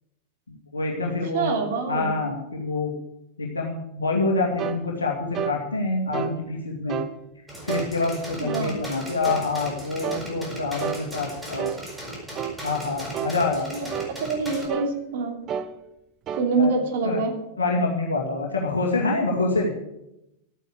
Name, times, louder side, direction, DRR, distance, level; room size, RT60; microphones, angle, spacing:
voice 1, 0.5-1.6 1.9-2.9 3.4-7.0 7.6-11.7 12.6-13.9 16.5-16.7 17.0-17.2 17.6-19.7, left 3 dB, 75° left, -1 dB, 2.2 m, -26 dB
voice 2, 1.3-2.1 8.4-8.7 13.7-13.9 14.2-15.4 16.4-17.3, right 4 dB, 55° right, 3 dB, 3.0 m, -25 dB
sound 1, 4.6-4.8 5.3-5.6 6.1-6.4 6.9-7.1 7.7-7.9 8.5-8.7 9.2-9.5 10.0-10.3 10.8-11.0 11.6-11.8 12.3-12.6 13.1-13.4 13.9-14.1 14.7-14.9 15.5-15.7 16.3-16.5, right 9 dB, 30° right, 1.0 m, -30 dB
sound 2, 7.5-14.7, right 1 dB, 5° right, 7.1 m, -37 dB
12.5 x 9.2 x 8.5 m, 0.87 s
figure-of-eight pair, 90°, 0 cm